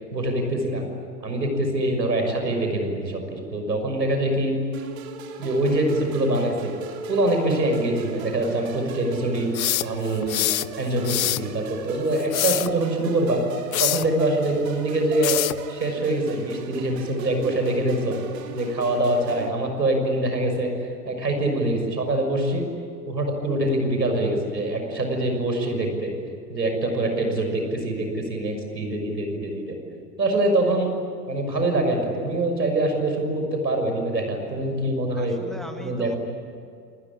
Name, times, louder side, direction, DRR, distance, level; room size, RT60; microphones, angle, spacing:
voice 1, 0.1-0.8 1.2-4.5 5.4-6.7 7.1-9.5 9.8-10.5 10.8-13.4 13.8-18.2 18.5-20.7 21.0-22.6 23.1-26.1 26.5-29.8 30.2-30.9 31.3-35.4 35.8-36.2, right 1 dB, 80° right, 4 dB, 6.5 m, -24 dB
sound 1, 4.7-19.5, right 6 dB, 55° right, 3.3 m, -38 dB
sound 2, 9.5-10.7 11.0-11.5 12.2-12.7 13.7-14.1 15.2-15.6, left 14 dB, 55° left, 0.7 m, -25 dB
voice 2, 35.1-36.2, right 1 dB, ahead, 4 dB, 2.1 m, -38 dB
28.5 x 21.0 x 9.9 m, 2.3 s
figure-of-eight pair, 100°, 50 cm